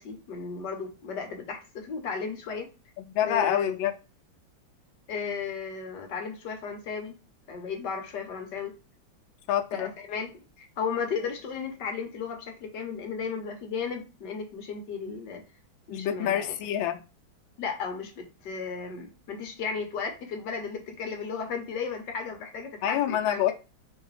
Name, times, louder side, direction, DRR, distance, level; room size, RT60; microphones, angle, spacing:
voice 1, 0.0-2.7 3.2-3.7 5.1-7.2 7.5-8.8 9.7-15.4 15.9-16.5 17.6-23.4, left 5 dB, 65° left, 1.5 m, -35 dB
voice 2, 3.0-4.0 9.5-9.9 15.9-17.0 22.8-23.5, left 10 dB, 80° left, 1.4 m, -27 dB
4.7 x 3.5 x 3.2 m
omnidirectional pair, 2.1 m